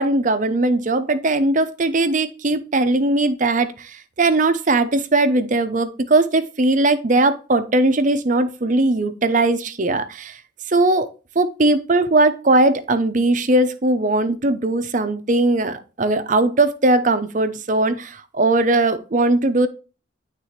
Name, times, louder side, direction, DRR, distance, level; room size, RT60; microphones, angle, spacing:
voice 1, 0.0-10.4 10.7-11.1 11.4-19.7, right 2 dB, 40° right, 0.7 m, -19 dB
11.0 x 3.7 x 2.9 m
head